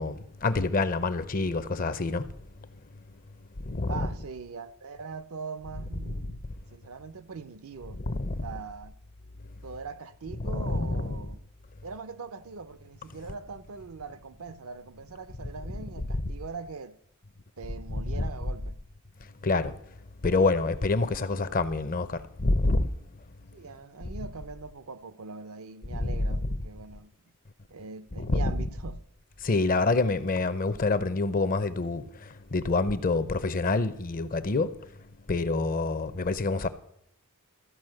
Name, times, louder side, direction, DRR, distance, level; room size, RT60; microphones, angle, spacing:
voice 1, 0.0-2.2 3.7-4.1 6.0-6.1 7.9-8.5 10.4-11.3 16.1-16.2 17.9-18.2 19.4-19.7 20.2-22.9 25.9-26.6 28.2-28.5 29.4-32.0 32.5-34.7 35.3-36.7, left 3 dB, 40° left, 0.6 m, -27 dB
voice 2, 3.9-6.4 6.7-8.0 8.4-8.9 9.6-11.4 11.8-17.0 17.6-18.8 23.5-27.1 27.7-29.0, right 4 dB, 75° right, 0.6 m, -41 dB
13.5 x 5.1 x 7.7 m
head